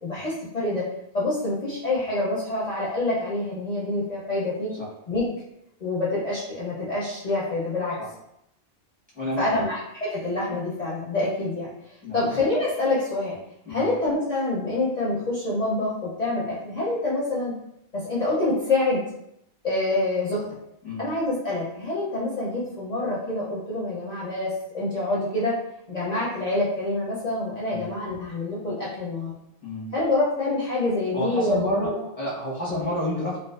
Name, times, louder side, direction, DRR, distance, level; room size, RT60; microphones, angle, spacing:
voice 1, 0.0-0.9 1.1-4.7 5.1-5.3 5.8-8.0 9.4-13.4 13.7-17.6 17.9-19.0 19.6-20.4 21.0-25.5 25.9-29.3 29.9-32.0 32.7-32.9, left 2 dB, 50° left, -7 dB, 0.5 m, -26 dB
voice 2, 9.1-9.7 12.0-12.2 13.7-13.9 20.8-21.0 27.7-27.9 29.6-29.9 31.1-33.4, equal, 10° right, -7 dB, 0.5 m, -30 dB
2.3 x 2.3 x 2.3 m, 0.80 s
omnidirectional pair, 1.2 m